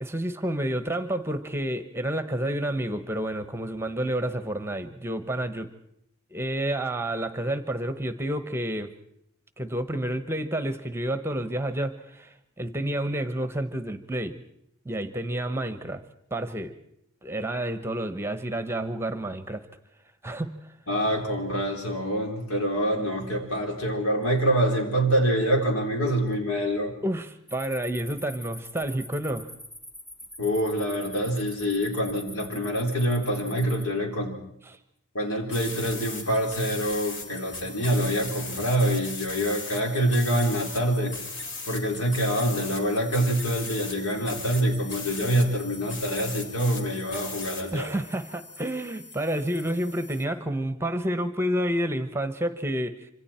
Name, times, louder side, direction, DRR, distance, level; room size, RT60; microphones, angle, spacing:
voice 1, 0.0-5.7 6.3-8.9 9.6-14.4 14.8-16.0 16.3-16.7 17.2-19.6 20.2-20.7 27.0-29.5 34.7-34.8 47.7-53.1, right 1 dB, 10° right, 11 dB, 0.9 m, -29 dB
voice 2, 20.9-26.9 30.4-34.3 35.1-41.1 41.6-47.9, equal, 80° left, 2 dB, 4.0 m, -26 dB
sound 1, 27.5-33.8, equal, 10° left, 2.9 m, -44 dB
sound 2, 35.5-50.2, left 3 dB, 55° left, 2.7 m, -38 dB
26.0 x 25.5 x 4.4 m, 0.75 s
head